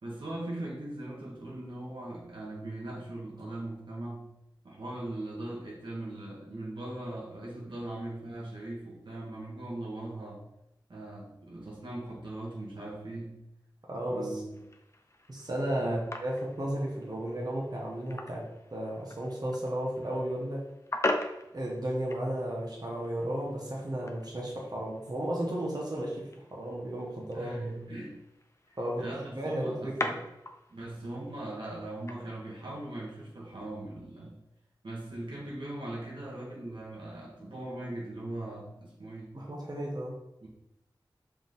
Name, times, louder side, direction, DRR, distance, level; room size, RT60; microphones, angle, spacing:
voice 1, 0.0-4.3 4.6-10.4 10.9-13.4 14.1-14.5 15.8-16.0 27.3-28.2 29.0-30.2 30.7-34.4 34.8-39.4 40.4-40.5, right 1 dB, 80° right, -4 dB, 1.8 m, -40 dB
voice 2, 13.9-14.4 15.3-18.4 18.7-20.6 21.5-27.7 28.8-29.0 29.3-30.1 39.3-40.1, right 1 dB, 50° right, -3 dB, 1.5 m, -34 dB
sound 1, 14.5-33.1, left 2 dB, 35° left, 0.8 m, -42 dB
5.5 x 4.9 x 4.0 m, 0.86 s
wide cardioid pair, 65°, 8 cm